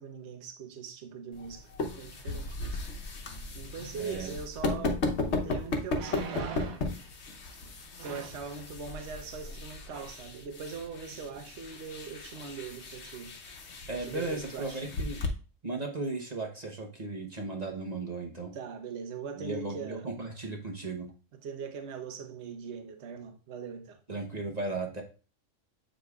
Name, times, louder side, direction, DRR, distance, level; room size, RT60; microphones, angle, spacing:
voice 1, 0.0-2.8 3.5-5.0 5.4-6.8 8.0-13.4 13.9-14.8 18.5-20.1 21.3-24.0, right 5 dB, 60° right, 1.1 m, -41 dB
sound 1, 1.3-15.3, left 3 dB, 55° left, 1.2 m, -36 dB
voice 2, 4.0-4.3 13.9-15.2 15.6-18.5 19.4-21.1 24.1-25.0, right 3 dB, 35° right, 0.9 m, -36 dB
sound 2, 5.9-6.9 8.0-8.5 9.4-9.6 9.9-10.2 10.7-10.8, right 7 dB, 85° right, 1.3 m, -42 dB
8.1 x 5.0 x 2.4 m
omnidirectional pair, 1.4 m